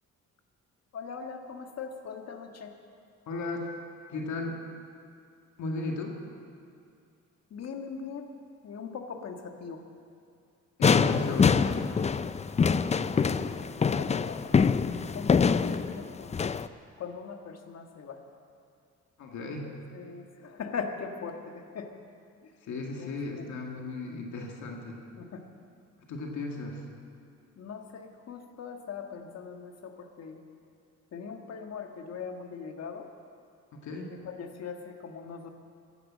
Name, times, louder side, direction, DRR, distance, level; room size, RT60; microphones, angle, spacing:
voice 1, 0.9-2.7 7.5-8.3 8.6-9.8 13.0-16.5 17.0-18.2 19.4-19.5 19.9-21.9 22.4-22.5 23.0-23.1 23.4-23.5 25.2-25.4 27.5-30.4 31.1-33.1 34.2-35.5, left 5 dB, 55° left, 4 dB, 1.6 m, -41 dB
voice 2, 3.3-3.7 4.1-4.6 5.6-6.3 10.8-11.7 19.2-19.7 22.7-25.0 26.1-26.9 33.7-34.1, left 2 dB, 70° left, 1 dB, 2.2 m, -35 dB
sound 1, 10.8-16.7, left 5 dB, 25° left, 0.4 m, -25 dB
15.5 x 10.5 x 7.3 m, 2.4 s
cardioid pair, 90°, 30 cm